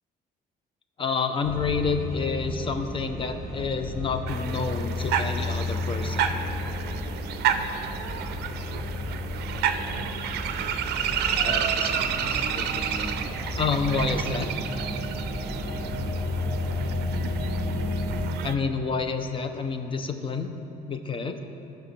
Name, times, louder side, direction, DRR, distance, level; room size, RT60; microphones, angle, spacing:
voice 1, 1.0-6.3 11.4-12.7 13.6-14.5 18.4-20.5 20.9-21.4, left 4 dB, 30° left, 7 dB, 0.6 m, -29 dB
sound 1, 1.4-18.3, left 2 dB, ahead, 1.9 m, -32 dB
sound 2, 4.3-18.5, right 8 dB, 75° right, 0.5 m, -30 dB
13.0 x 5.7 x 3.3 m, 2.9 s
cardioid pair, 110°, 17 cm